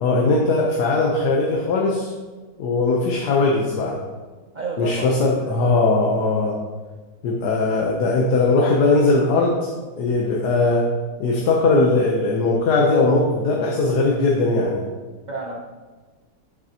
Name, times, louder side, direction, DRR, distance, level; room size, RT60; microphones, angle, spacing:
voice 1, 0.0-2.1 2.6-4.0 4.8-6.6 7.2-9.7 10.0-10.9 11.2-14.8, left 3 dB, 85° left, -1 dB, 1.4 m, -19 dB
voice 2, 4.5-5.6 9.0-9.4 15.3-15.6, right 3 dB, 85° right, -1 dB, 0.4 m, -32 dB
9.0 x 6.6 x 2.8 m, 1.3 s
omnidirectional pair, 1.7 m